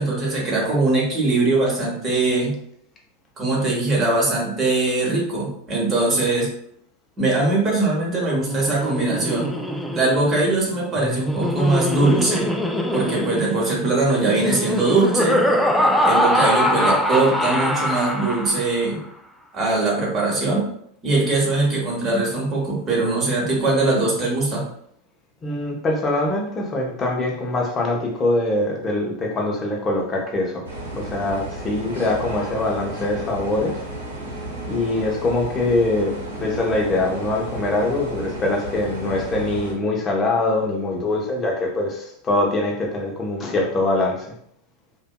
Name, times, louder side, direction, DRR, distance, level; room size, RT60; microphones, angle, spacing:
voice 1, 0.0-2.6 3.4-6.5 7.2-9.5 9.9-12.5 12.9-15.4 16.0-19.0 19.5-20.7 21.0-24.6, right 2 dB, 30° right, -3 dB, 1.0 m, -21 dB
Laughter, 8.3-18.8, equal, 5° left, 0.3 m, -23 dB
voice 2, 25.4-30.6 30.9-33.8 34.7-44.3, left 2 dB, 25° left, -1 dB, 0.7 m, -23 dB
sound 1, 30.6-39.7, right 1 dB, 85° right, 0.8 m, -33 dB
2.6 x 2.2 x 2.2 m, 0.68 s
figure-of-eight pair, 85°, 0 cm